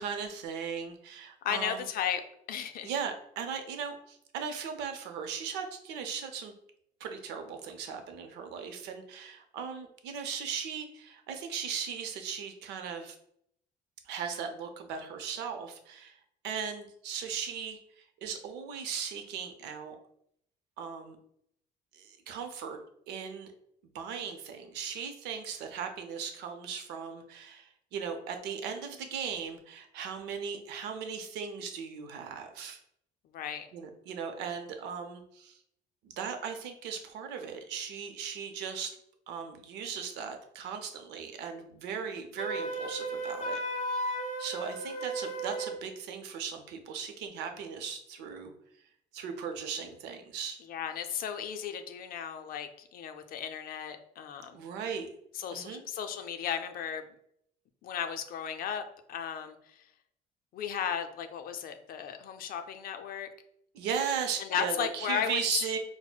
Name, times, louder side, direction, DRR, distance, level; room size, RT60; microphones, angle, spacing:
voice 1, 0.0-1.9 2.8-6.5 7.0-13.1 14.0-20.0 20.8-21.2 21.9-22.8 23.1-23.5 23.9-32.8 33.7-35.6 36.0-39.0 39.3-43.6 44.4-48.5 49.1-50.6 54.5-55.1 55.5-55.8 63.7-65.8, right 6 dB, 90° right, 6 dB, 0.6 m, -37 dB
voice 2, 1.4-2.2 2.5-2.9 33.3-33.7 50.7-54.6 55.3-57.1 57.8-59.8 60.5-63.3 64.4-65.4, left 8 dB, 60° left, 7 dB, 0.5 m, -35 dB
Wind instrument woodwind instrument, 42.4-45.8, right 1 dB, 35° left, 1.0 m, -35 dB
5.8 x 2.1 x 2.3 m, 0.72 s
cardioid pair, 110°, 17 cm